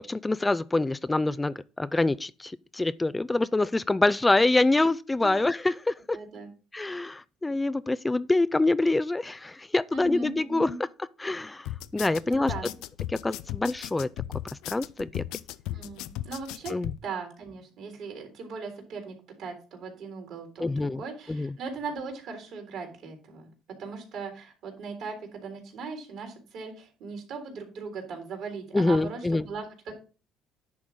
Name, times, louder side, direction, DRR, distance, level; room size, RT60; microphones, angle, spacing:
voice 1, 0.0-6.2 6.7-10.7 11.2-12.5 13.1-14.1 14.7-15.2 16.7-16.9 20.6-21.0 21.3-21.5 28.7-29.5, left 2 dB, 15° left, 0.4 m, -26 dB
voice 2, 6.1-6.5 9.9-10.8 11.9-12.7 15.7-23.5 23.8-30.0, right 4 dB, 65° right, 3.6 m, -39 dB
sound 1, 11.7-17.0, left 14 dB, 75° left, 0.5 m, -36 dB
10.5 x 3.6 x 6.1 m
supercardioid pair, 75°, 0 cm